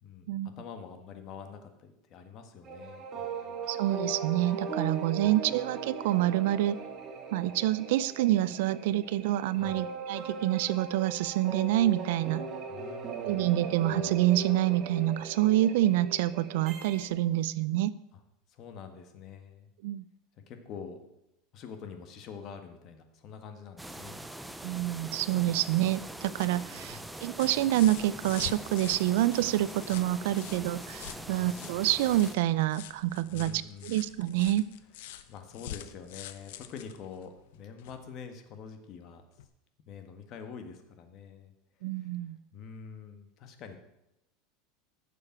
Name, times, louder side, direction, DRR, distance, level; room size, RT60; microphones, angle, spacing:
voice 1, 0.0-3.7 5.2-5.3 9.6-9.8 12.7-13.5 18.1-18.2 18.5-19.7 20.5-21.0 21.5-24.3 26.6-27.1 31.1-31.4 33.3-34.0 35.3-39.2 39.9-41.5 42.0-42.1 42.5-43.8, left 6 dB, 40° left, 7 dB, 1.7 m, -46 dB
sound 1, 2.6-17.1, right 4 dB, 30° right, 2.0 m, -39 dB
voice 2, 3.7-6.8 7.3-12.5 13.2-17.9 19.8-20.0 24.6-34.7 41.8-42.4, right 14 dB, 75° right, 18 dB, 0.5 m, -27 dB
sound 2, 23.8-32.4, right 1 dB, 5° right, 0.6 m, -43 dB
sound 3, 26.1-38.1 39.4-39.5, left 12 dB, 75° left, 0.9 m, -47 dB
15.0 x 6.9 x 6.0 m, 0.87 s
supercardioid pair, 150°, 0 cm